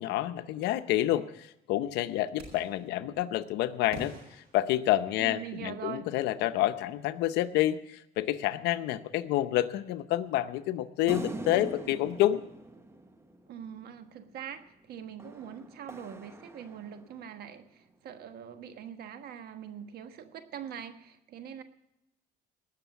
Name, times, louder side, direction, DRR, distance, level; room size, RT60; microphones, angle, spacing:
voice 1, 0.0-4.1 4.5-12.4, left 14 dB, 90° left, 12 dB, 0.7 m, -28 dB
sound 1, 2.4-2.8 3.9-5.4, equal, 80° right, 6.3 m, -46 dB
voice 2, 5.2-6.1 13.5-21.6, right 8 dB, 65° right, 9 dB, 1.4 m, -43 dB
sound 2, 11.1-13.8 15.2-17.3, right 2 dB, 15° right, 1.1 m, -42 dB
18.5 x 6.6 x 8.1 m, 0.85 s
cardioid pair, 110°, 17 cm